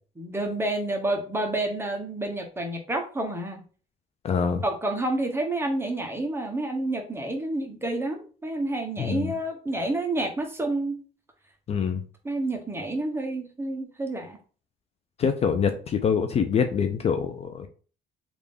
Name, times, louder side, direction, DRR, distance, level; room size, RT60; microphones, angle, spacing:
voice 1, 0.2-3.6 4.6-11.0 12.2-14.4, right 2 dB, 15° right, 3 dB, 0.8 m, -29 dB
voice 2, 4.2-4.6 9.0-9.3 11.7-12.0 15.2-17.7, left 6 dB, 40° left, 7 dB, 0.4 m, -25 dB
3.5 x 2.5 x 3.4 m, 0.39 s
cardioid pair, 110°, 17 cm